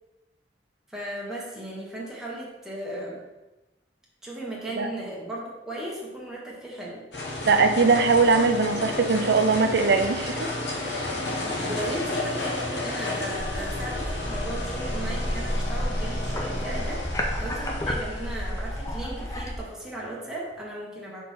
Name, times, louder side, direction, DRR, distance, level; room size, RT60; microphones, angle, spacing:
voice 1, 0.9-3.2 4.2-7.0 11.3-17.0 17.4-21.2, right 1 dB, 5° right, -5 dB, 1.3 m, -36 dB
sound 1, 7.1-20.5, left 2 dB, 75° left, 1.2 m, -32 dB
voice 2, 7.4-10.5, right 4 dB, 65° right, 8 dB, 0.5 m, -21 dB
sound 2, 13.3-19.6, equal, 20° left, 0.6 m, -31 dB
4.3 x 4.1 x 5.5 m, 1.0 s
head